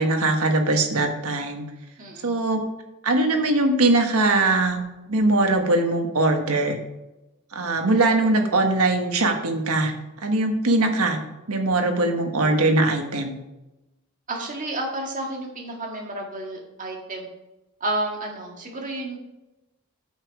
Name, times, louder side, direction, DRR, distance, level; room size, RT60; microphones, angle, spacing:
voice 1, 0.0-1.6 2.2-2.6 3.0-4.8 5.1-6.8 7.5-9.9 10.2-11.2 11.5-13.4, right 2 dB, 90° right, 4 dB, 1.4 m, -21 dB
voice 2, 2.0-2.4 14.3-17.3 17.8-19.2, right 2 dB, 35° right, 0 dB, 1.9 m, -31 dB
8.7 x 6.7 x 4.9 m, 0.99 s
head